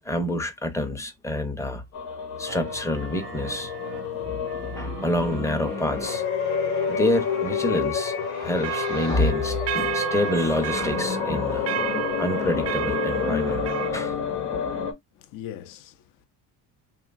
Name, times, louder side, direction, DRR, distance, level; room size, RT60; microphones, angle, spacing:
voice 1, 0.0-1.8 2.4-3.7 4.2-4.4 4.7-6.2 6.9-8.1 8.4-11.6 12.2-13.6 13.9-14.2, left 1 dB, 5° left, 0.6 m, -27 dB
sound 1, 1.9-14.9, left 8 dB, 80° left, 0.9 m, -29 dB
sound 2, 2.5-14.3, right 10 dB, 75° right, 0.6 m, -40 dB
sound 3, 3.2-3.8 8.6-13.9, right 11 dB, 35° right, 0.4 m, -31 dB
voice 2, 15.1-16.3, left 11 dB, 50° left, 0.5 m, -41 dB
3.0 x 2.2 x 2.4 m
supercardioid pair, 70°, 43 cm